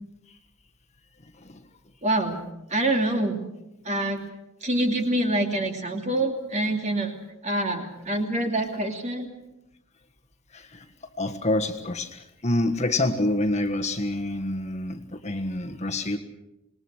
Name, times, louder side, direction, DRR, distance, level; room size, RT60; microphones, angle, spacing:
voice 1, 2.0-2.4 2.7-3.4 3.8-4.2 4.6-7.1 7.4-9.3, right 1 dB, 30° right, 3 dB, 2.8 m, -25 dB
voice 2, 10.5-10.8 11.2-16.2, left 2 dB, 30° left, 4 dB, 1.5 m, -27 dB
26.5 x 20.5 x 6.5 m, 0.91 s
head